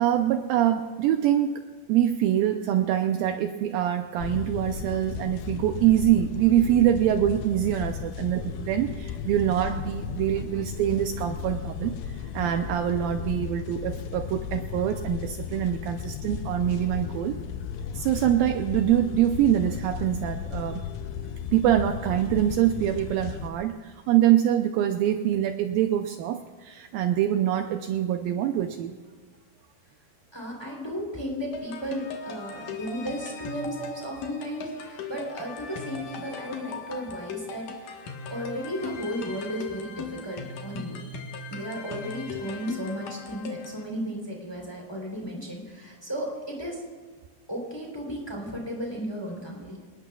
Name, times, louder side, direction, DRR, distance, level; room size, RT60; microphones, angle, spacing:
voice 1, 0.0-1.6 1.9-17.4 17.9-20.8 21.5-28.9, right 11 dB, 80° right, 6 dB, 2.2 m, -24 dB
sound 1, 4.2-23.5, left 7 dB, 85° left, 2.7 m, -35 dB
voice 2, 30.3-41.0 41.5-46.8 47.5-49.8, equal, 5° left, -1 dB, 2.6 m, -34 dB
sound 2, 31.5-43.8, left 4 dB, 65° left, 2.6 m, -38 dB
27.0 x 19.0 x 2.3 m, 1.4 s
omnidirectional pair, 4.4 m